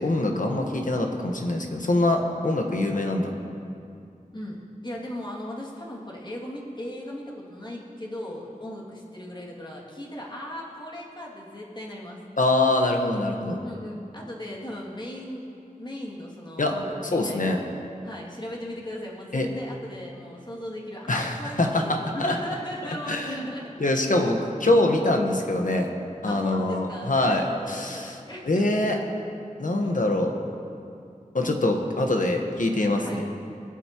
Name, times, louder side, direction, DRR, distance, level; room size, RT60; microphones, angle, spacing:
voice 1, 0.0-3.3 12.4-13.6 16.6-16.7 17.1-17.6 19.3-19.5 21.1-21.8 22.2-22.3 23.1-23.4 23.8-25.9 26.2-28.1 28.4-29.0 29.6-30.3 31.3-33.2, left 2 dB, 70° left, 2 dB, 1.3 m, -24 dB
voice 2, 4.3-12.2 13.6-15.4 15.8-17.6 18.0-23.7 26.3-28.7 29.8-29.9 32.9-33.5, left 1 dB, 35° left, -4 dB, 2.5 m, -38 dB
22.0 x 8.3 x 3.0 m, 2.5 s
wide cardioid pair, 50°, 14 cm